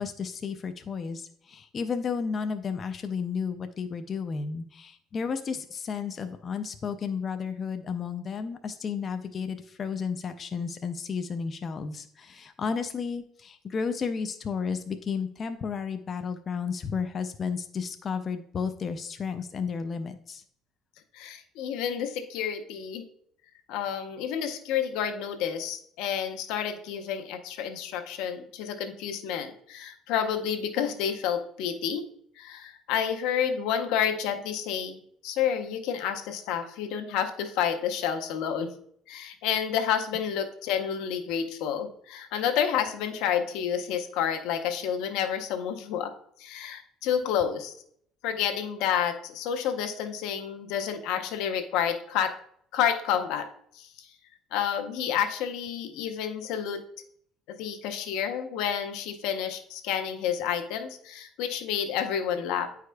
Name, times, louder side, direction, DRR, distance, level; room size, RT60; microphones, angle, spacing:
voice 1, 0.0-20.4, left 6 dB, 35° left, 8 dB, 0.4 m, -32 dB
voice 2, 21.1-23.0 23.7-32.1 32.4-38.7 39.1-46.1 46.4-47.7 48.2-52.3 52.7-53.5 53.7-54.1 54.5-56.8 57.6-62.7, left 8 dB, 85° left, 6 dB, 0.7 m, -29 dB
9.3 x 4.8 x 2.2 m, 0.65 s
cardioid pair, 130°, 0 cm